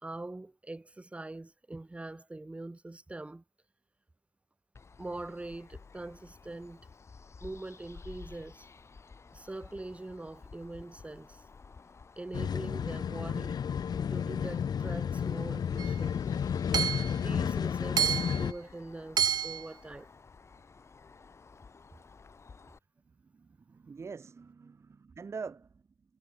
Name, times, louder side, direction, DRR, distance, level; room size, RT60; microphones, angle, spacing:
voice 1, 0.0-3.4 5.0-6.9 7.4-8.6 9.3-11.4 12.2-13.6 14.1-16.5 17.2-20.1, right 2 dB, 15° right, 3.4 m, -43 dB
sound 1, 4.7-22.8, left 4 dB, 30° left, 2.5 m, -54 dB
sound 2, 12.3-18.5, left 7 dB, 45° left, 0.9 m, -32 dB
Hammer / Chink clink, 15.8-15.9 16.7-17.1 18.0-18.4 19.2-19.6, right 8 dB, 45° right, 0.5 m, -28 dB
voice 2, 23.3-25.7, right 5 dB, 30° right, 1.1 m, -44 dB
cardioid pair, 120°, 9 cm